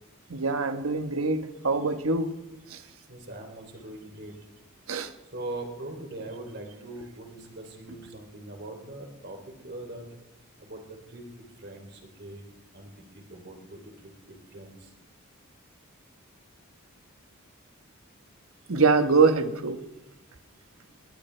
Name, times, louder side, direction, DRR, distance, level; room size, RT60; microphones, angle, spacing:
voice 1, 0.3-2.3 2.7-2.8 4.9-5.1 18.7-19.8, right 4 dB, 85° right, 8 dB, 1.2 m, -24 dB
voice 2, 3.1-4.3 5.3-10.0 10.6-10.8 11.1-11.2 11.6-12.4 12.7-14.9, right 2 dB, 50° right, 3 dB, 3.2 m, -41 dB
20.5 x 20.0 x 3.3 m, 0.97 s
head